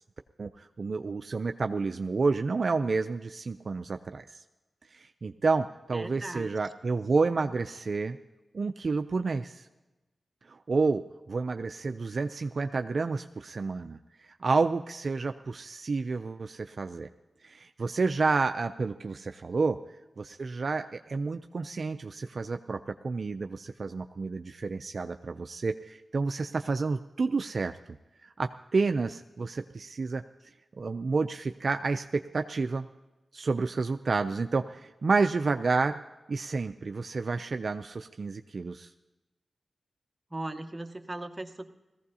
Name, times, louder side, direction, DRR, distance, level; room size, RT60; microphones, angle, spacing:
voice 1, 0.4-4.4 4.9-8.2 8.5-9.7 10.5-14.0 14.3-17.1 17.4-19.8 20.2-22.8 23.0-27.7 28.2-30.2 30.8-32.9 33.3-36.0 36.3-38.9, right 4 dB, 60° right, 8 dB, 0.4 m, -30 dB
voice 2, 5.9-6.5 40.3-41.7, right 2 dB, 25° right, 6 dB, 1.0 m, -38 dB
18.5 x 15.0 x 2.8 m, 1.1 s
cardioid pair, 50°, 0 cm